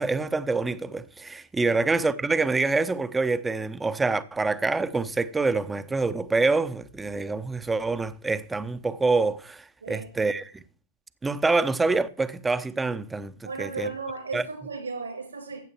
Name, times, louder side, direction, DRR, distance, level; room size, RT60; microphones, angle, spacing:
voice 1, 0.0-10.6 11.2-13.9 14.3-14.4, right 3 dB, 10° right, 0.8 m, -26 dB
voice 2, 13.4-15.6, right 4 dB, 75° right, 5.0 m, -35 dB
15.0 x 8.5 x 4.6 m
figure-of-eight pair, 90°, 0 cm